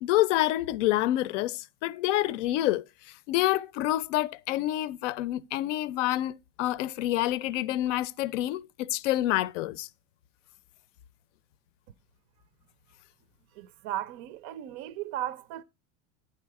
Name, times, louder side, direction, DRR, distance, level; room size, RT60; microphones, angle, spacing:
voice 1, 0.0-2.8 3.3-9.9, left 15 dB, 80° left, 0.6 m, -27 dB
voice 2, 13.5-15.6, right 12 dB, 40° right, 0.4 m, -36 dB
9.8 x 4.8 x 4.7 m
supercardioid pair, 155°, 36 cm